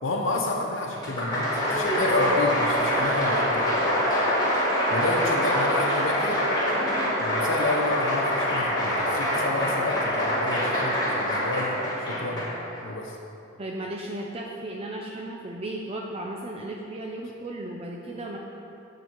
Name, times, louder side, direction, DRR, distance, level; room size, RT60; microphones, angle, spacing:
voice 1, 0.0-3.7 4.9-6.4 7.2-12.5 12.8-13.2, left 2 dB, 80° left, -1 dB, 1.0 m, -30 dB
Applause, 0.9-12.8, equal, 20° left, 2.5 m, -25 dB
voice 2, 13.6-18.4, right 1 dB, 30° right, -1 dB, 0.6 m, -35 dB
9.4 x 4.9 x 7.9 m, 2.6 s
head